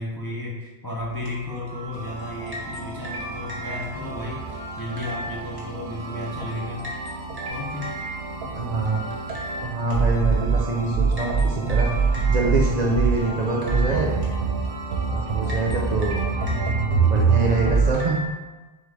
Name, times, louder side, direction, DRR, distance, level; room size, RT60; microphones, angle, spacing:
voice 1, 0.0-6.9 7.4-7.9, left 1 dB, 30° left, -4 dB, 0.4 m, -33 dB
sound 1, 1.0-18.3, right 1 dB, 25° right, 0.8 m, -37 dB
sound 2, 1.9-17.9, right 5 dB, 75° right, 0.8 m, -26 dB
voice 2, 8.5-9.0 9.6-11.9 12.3-14.1 15.1-16.2 16.5-18.2, right 3 dB, 55° right, -2 dB, 0.5 m, -25 dB
3.9 x 3.6 x 3.2 m, 1.2 s
omnidirectional pair, 1.1 m